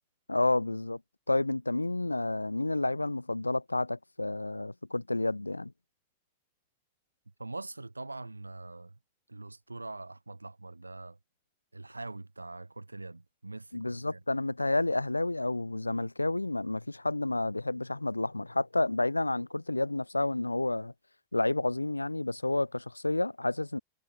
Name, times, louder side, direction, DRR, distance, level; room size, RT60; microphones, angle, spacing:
voice 1, 0.3-1.0 1.3-5.7 13.7-20.9 21.3-23.8, left 2 dB, 85° left, 0.8 m, -30 dB
voice 2, 7.4-8.9 9.3-11.2 11.7-14.2, right 2 dB, 80° right, 2.2 m, -43 dB
figure-of-eight pair, 90°, 0 cm